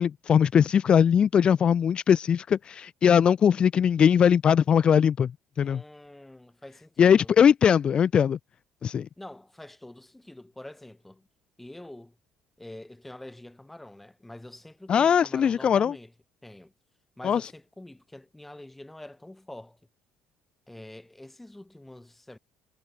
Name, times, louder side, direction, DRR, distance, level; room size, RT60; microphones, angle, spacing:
voice 1, 0.0-5.3 5.6-5.8 7.0-8.4 8.8-9.1 14.9-15.9 17.2-17.5, left 8 dB, 40° left, 1.0 m, -20 dB
voice 2, 5.6-7.3 9.2-11.3 11.6-12.2 12.6-16.1 16.4-16.7 17.2-19.8 20.7-22.4, left 1 dB, 5° left, 5.8 m, -46 dB
cardioid pair, 115°, 3 cm